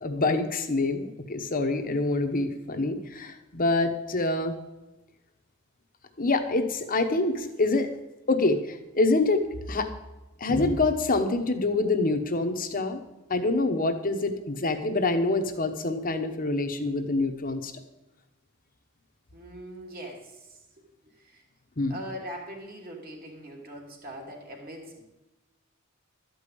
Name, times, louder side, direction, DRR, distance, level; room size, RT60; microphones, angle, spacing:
voice 1, 0.0-4.6 6.2-7.9 8.3-9.4 9.7-9.9 10.4-13.0 13.3-17.7 21.8-22.0, left 2 dB, 40° left, 7 dB, 1.0 m, -26 dB
voice 2, 19.3-21.4 21.9-25.0, equal, 45° right, 0 dB, 2.7 m, -42 dB
12.5 x 5.4 x 8.4 m, 1.0 s
head